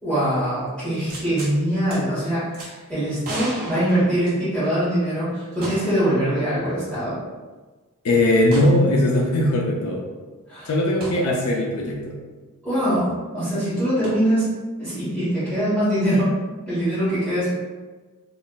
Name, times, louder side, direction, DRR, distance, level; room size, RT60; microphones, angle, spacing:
voice 1, 0.0-7.2 10.5-10.7 12.6-14.5 14.8-16.3 16.7-17.5, equal, 5° left, -14 dB, 1.1 m, -23 dB
sound 1, 1.1-1.6 1.9-2.0 2.5-2.7 3.2-4.7 5.6-6.1 6.4-6.5 8.5-8.8 11.0-11.2 14.0-14.1, right 1 dB, 45° right, 1.1 m, -34 dB
voice 2, 8.0-10.0 10.7-12.2, left 1 dB, 75° left, -1 dB, 0.5 m, -20 dB
3.7 x 2.5 x 2.3 m, 1.3 s
head